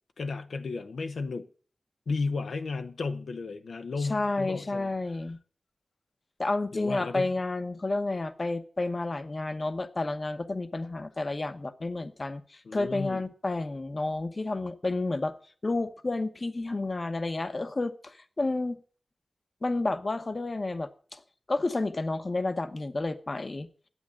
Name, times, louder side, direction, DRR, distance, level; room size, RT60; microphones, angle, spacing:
voice 1, 0.2-1.5 2.1-4.9 6.7-7.3 12.6-13.2, left 4 dB, 90° left, 0.9 m, -33 dB
voice 2, 4.0-5.4 6.4-15.4 15.6-18.8 19.6-21.2 21.5-23.7, left 2 dB, 40° left, 0.9 m, -31 dB
11.0 x 8.5 x 7.5 m
wide cardioid pair, 110°, 0 cm